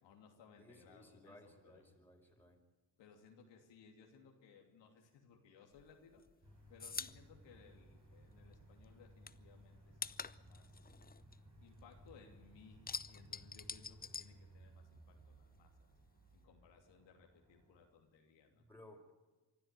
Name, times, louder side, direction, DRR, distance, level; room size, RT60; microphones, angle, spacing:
voice 1, 0.0-1.9 3.0-6.3 6.7-10.9 11.6-15.9 16.3-18.7, left 6 dB, 80° left, 2 dB, 3.0 m, -63 dB
voice 2, 0.6-2.6 18.5-19.1, left 1 dB, 5° left, 2 dB, 5.0 m, -60 dB
sound 1, 5.8-8.6 8.8-12.1 12.4-15.1 15.3-16.4, left 5 dB, 20° left, 0.6 m, -47 dB
sound 2, 6.4-17.9, right 1 dB, 45° right, 7.7 m, -61 dB
24.5 x 12.5 x 9.1 m, 1.2 s
supercardioid pair, 60°, 43 cm